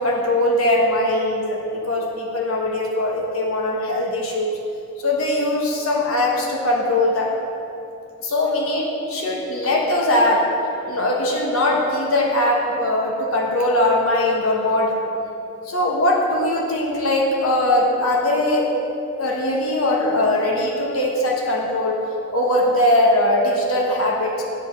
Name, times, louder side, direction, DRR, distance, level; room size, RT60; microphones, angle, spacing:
voice 1, 0.0-4.6 5.0-7.3 8.2-10.5 10.9-15.0 15.7-18.7 19.2-22.0 22.3-24.4, left 1 dB, 75° left, -1 dB, 1.2 m, -20 dB
8.2 x 5.4 x 6.6 m, 2.8 s
head